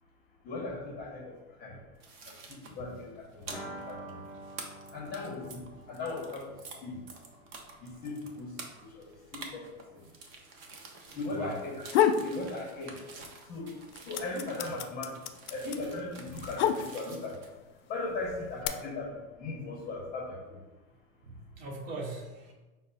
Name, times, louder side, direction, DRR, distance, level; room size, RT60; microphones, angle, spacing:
voice 1, 0.4-1.8 2.2-4.3 4.9-6.5 6.8-7.0 7.8-10.0 11.1-11.7 12.2-13.0 13.5-17.5 17.9-20.6, left 3 dB, 20° left, -1 dB, 0.7 m, -38 dB
sound 1, 2.0-6.8 7.1-17.5, right 4 dB, 30° right, 0.5 m, -49 dB
sound 2, 3.5-9.1 9.3-9.4 9.7-9.8, right 1 dB, ahead, 0.9 m, -48 dB
voice 2, 11.1-11.6 21.2-22.5, right 2 dB, 45° right, 1 dB, 1.0 m, -40 dB
sound 3, 11.6-12.3 12.7-13.4 13.7-17.3 18.0-18.7, left 9 dB, 60° left, 0.5 m, -28 dB
5.3 x 2.0 x 3.9 m, 1.2 s
hypercardioid pair, 140°, 42 cm